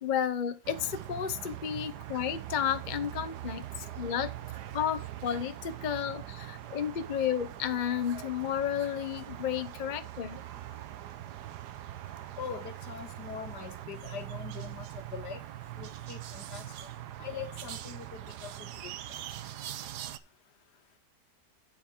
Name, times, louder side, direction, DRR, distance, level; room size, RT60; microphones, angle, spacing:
voice 1, 0.0-4.3 4.7-10.4, left 9 dB, 45° left, 0.6 m, -32 dB
sound 1, 0.6-20.2, right 13 dB, 75° right, 1.3 m, -42 dB
voice 2, 12.4-15.4 15.8-16.7 17.2-18.9, left 7 dB, 70° left, 1.7 m, -42 dB
8.1 x 7.9 x 4.4 m
omnidirectional pair, 1.8 m